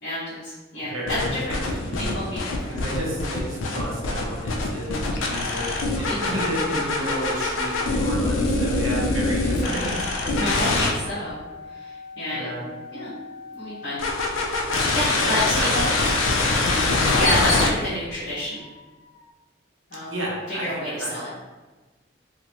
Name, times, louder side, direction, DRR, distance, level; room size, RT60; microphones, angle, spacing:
voice 1, 0.0-2.8 6.0-6.3 10.3-11.4 11.7-12.5 12.9-13.1 13.6-14.0 14.7-15.8 17.1-18.6 19.9-20.1 20.5-21.3, left 1 dB, 55° left, -11 dB, 1.0 m, -29 dB
voice 2, 0.8-2.2 2.7-10.4 12.3-12.7 15.1-16.8 20.1-21.3, right 1 dB, 90° right, -3 dB, 0.8 m, -32 dB
sound 1, 1.1-10.9 14.0-17.7, left 2 dB, 85° left, 0.5 m, -24 dB
2.9 x 2.5 x 2.9 m, 1.2 s
head